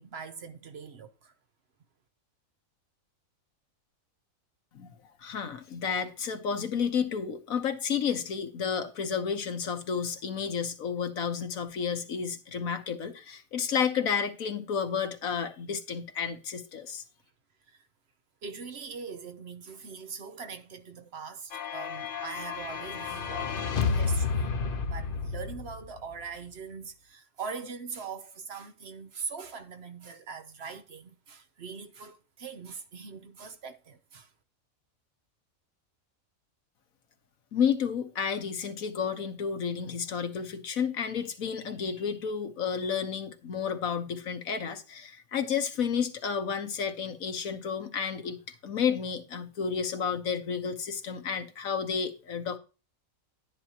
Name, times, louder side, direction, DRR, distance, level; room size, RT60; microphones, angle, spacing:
voice 1, 0.0-1.3 17.7-17.8 18.4-24.5 24.9-34.3, right 5 dB, 55° right, 1.0 m, -42 dB
voice 2, 4.7-17.0 37.5-52.6, left 7 dB, 80° left, 1.6 m, -31 dB
sound 1, 21.5-26.2, left 5 dB, 45° left, 0.9 m, -31 dB
11.0 x 10.0 x 2.9 m
omnidirectional pair, 1.4 m